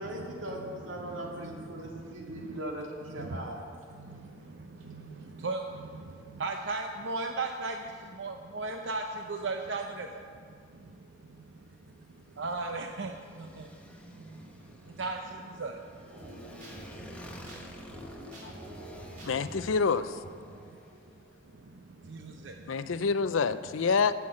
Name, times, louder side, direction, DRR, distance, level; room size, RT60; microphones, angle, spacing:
voice 1, 0.0-3.6, right 1 dB, 85° right, -1 dB, 2.2 m, -39 dB
voice 2, 1.0-2.6 3.2-3.5 3.9-10.1 11.3-19.7 20.5-20.7 21.4-23.0, right 3 dB, 65° right, 3 dB, 0.7 m, -39 dB
Motorcycle, 10.5-21.2, equal, 5° left, 1.0 m, -52 dB
sound 1, 16.1-21.6, equal, 45° right, 3.2 m, -47 dB
voice 3, 19.2-20.2 22.7-24.1, left 5 dB, 85° left, 13 dB, 0.5 m, -27 dB
14.5 x 5.8 x 7.6 m, 2.2 s
head